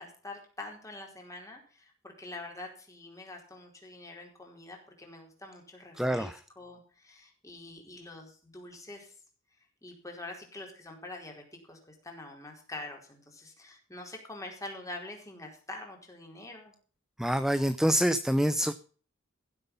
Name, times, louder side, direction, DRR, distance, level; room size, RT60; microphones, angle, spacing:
voice 1, 0.0-9.1 9.8-16.7, left 2 dB, 15° left, 4.4 m, -45 dB
voice 2, 6.0-6.4 17.2-18.7, equal, ahead, 0.6 m, -26 dB
16.0 x 8.0 x 5.5 m
head